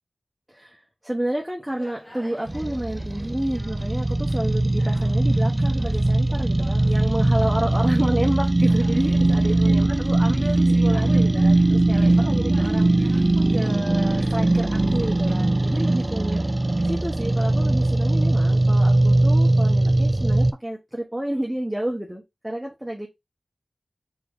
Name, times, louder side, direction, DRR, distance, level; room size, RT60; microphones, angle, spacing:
voice 1, 0.5-16.4 16.8-23.1, right 1 dB, 10° right, -1 dB, 1.0 m, -30 dB
Conversation, 1.6-16.9, equal, 15° left, 1.1 m, -46 dB
sound 1, 2.5-20.5, right 2 dB, 30° right, 0.3 m, -20 dB
4.3 x 3.6 x 3.1 m, 0.20 s
wide cardioid pair, 55°, 0 cm